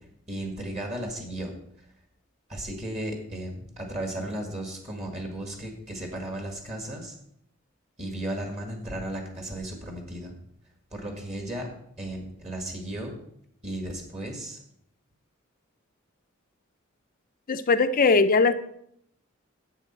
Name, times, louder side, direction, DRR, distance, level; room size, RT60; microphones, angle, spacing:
voice 1, 0.3-1.5 2.5-7.1 8.0-10.3 10.9-11.7 12.0-13.2 13.6-14.6, right 1 dB, 35° right, 2 dB, 1.8 m, -35 dB
voice 2, 17.5-18.5, left 4 dB, 45° left, 10 dB, 0.5 m, -20 dB
10.5 x 8.0 x 4.4 m, 0.71 s
head